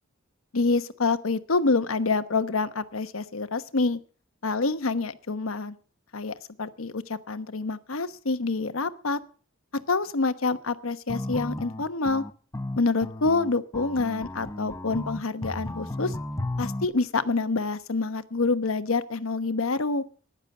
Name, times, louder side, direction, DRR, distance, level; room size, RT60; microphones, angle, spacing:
voice 1, 0.5-4.0 4.4-5.7 6.1-9.2 9.7-12.2 12.8-16.1 16.6-20.0, left 3 dB, 80° left, 11 dB, 1.1 m, -27 dB
sound 1, 11.1-16.9, left 1 dB, 15° left, 0.9 m, -34 dB
15.0 x 10.5 x 6.6 m, 0.42 s
head